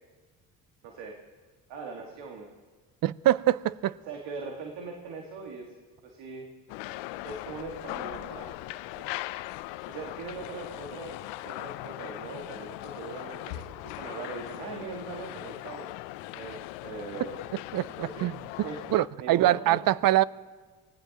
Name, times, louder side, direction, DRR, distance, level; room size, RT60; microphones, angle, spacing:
voice 1, 0.8-1.1 1.7-2.5 4.0-5.7 6.0-6.5 7.2-9.3 9.9-15.9 16.3-17.5 17.9-18.3 18.6-18.8 19.2-19.8, right 4 dB, 75° right, 2.0 m, -41 dB
voice 2, 3.0-3.9 17.7-18.3 18.9-20.2, right 14 dB, 55° right, 0.6 m, -24 dB
sound 1, 6.7-19.1, left 18 dB, 80° left, 0.6 m, -39 dB
24.5 x 18.0 x 3.0 m
hypercardioid pair, 55°, 42 cm